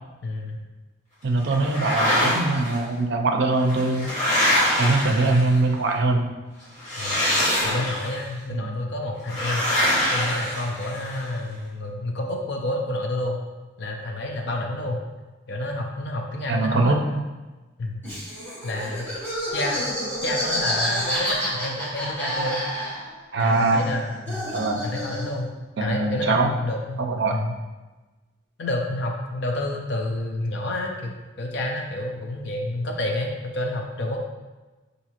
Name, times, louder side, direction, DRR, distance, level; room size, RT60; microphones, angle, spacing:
voice 1, 0.2-0.6 5.1-5.2 7.0-7.2 7.6-9.6 10.1-13.4 13.8-15.0 15.5-17.2 17.8-18.0 18.6-19.1 19.5-19.9 20.2-22.6 23.3-24.5 24.8-25.5 25.8-27.0 27.3-27.5 28.6-31.1 31.4-34.3, left 1 dB, 60° left, 1 dB, 0.5 m, -29 dB
voice 2, 1.2-4.1 4.8-6.3 8.5-8.7 16.5-17.0 23.3-23.8 24.5-24.8 25.8-26.5 27.0-27.4, right 3 dB, 55° right, 3 dB, 0.4 m, -22 dB
sound 1, 1.5-2.8 3.6-5.7 6.8-8.2 9.3-11.2, equal, 35° left, 1.2 m, -24 dB
Laughter, 18.0-23.2 23.5-25.4, equal, 10° left, 1.0 m, -29 dB
5.7 x 2.6 x 2.9 m, 1.2 s
head